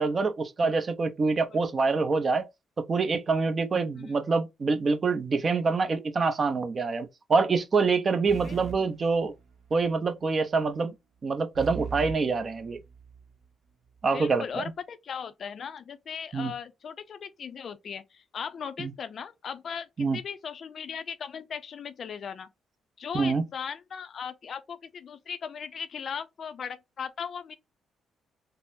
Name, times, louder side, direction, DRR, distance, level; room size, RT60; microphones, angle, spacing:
voice 1, 0.0-2.5 2.8-9.3 9.7-10.9 11.2-12.8 14.0-14.6 16.3-16.5 18.8-18.9 20.0-20.2 23.1-23.4, right 4 dB, 40° right, 0.5 m, -26 dB
sound 1, 8.2-9.9 11.5-13.3, right 6 dB, 65° right, 1.0 m, -40 dB
voice 2, 8.4-8.9 14.1-22.5 23.0-27.6, left 7 dB, 55° left, 0.4 m, -38 dB
3.7 x 2.0 x 2.5 m
cardioid pair, 90°, 0 cm